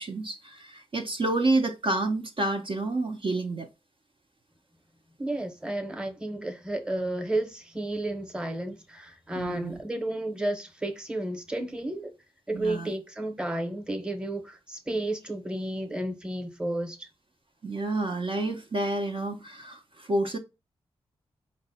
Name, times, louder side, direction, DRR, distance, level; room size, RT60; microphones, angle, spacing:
voice 1, 0.0-3.7 9.3-9.8 12.5-12.9 17.6-20.4, right 2 dB, 50° right, 0.6 m, -29 dB
voice 2, 5.2-12.1 12.5-17.1, right 1 dB, 5° right, 0.8 m, -32 dB
4.5 x 2.1 x 4.0 m
cardioid pair, 65°, 12 cm